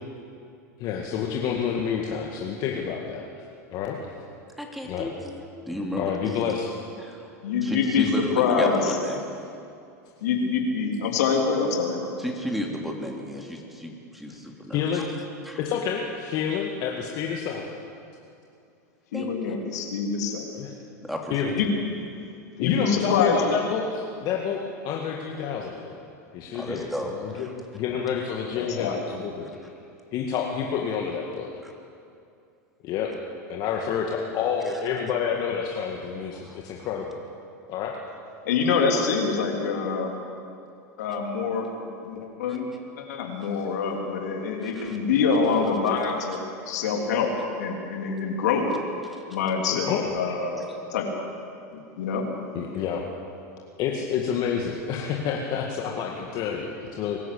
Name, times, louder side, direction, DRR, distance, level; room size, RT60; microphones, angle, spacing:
voice 1, 0.8-3.3 3.7-4.0 4.8-5.1 6.0-6.7 14.7-15.1 15.6-17.7 20.5-20.7 21.3-21.6 22.6-25.9 26.3-29.5 30.1-31.5 32.8-33.1 33.5-37.2 37.7-38.0 49.7-50.4 52.5-53.0 53.8-57.2, left 7 dB, 50° left, 0 dB, 2.0 m, -29 dB
voice 2, 4.6-6.5 7.0-7.3 7.6-9.2 12.2-15.1 15.4-15.6 19.1-19.5 21.0-21.5 26.5-27.5 29.4-29.5 31.6-31.7 36.4-36.6 44.6-45.0 49.1-49.2, left 1 dB, ahead, 1 dB, 3.0 m, -33 dB
voice 3, 7.4-9.0 10.2-12.1 19.1-20.5 21.5-21.7 22.6-23.4 28.5-29.1 38.5-40.2 41.0-41.7 42.0-42.7 43.0-46.4 46.7-47.3 47.6-48.6 49.3-51.1 51.7-52.2, left 5 dB, 75° left, 1 dB, 3.4 m, -25 dB
22.5 x 13.5 x 8.6 m, 2.5 s
hypercardioid pair, 100°, 9 cm